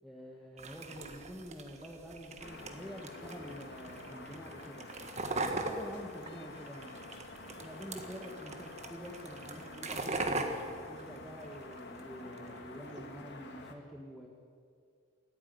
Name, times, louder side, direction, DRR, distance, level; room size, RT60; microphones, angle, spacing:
voice 1, 0.0-4.8 5.3-6.9 7.6-14.3, equal, ahead, -2 dB, 1.5 m, -47 dB
sound 1, 0.6-12.0 12.3-13.0, right 2 dB, 30° right, 1.6 m, -41 dB
sound 2, 2.4-13.7, left 2 dB, 55° left, 1.8 m, -49 dB
28.5 x 9.6 x 9.5 m, 2.2 s
head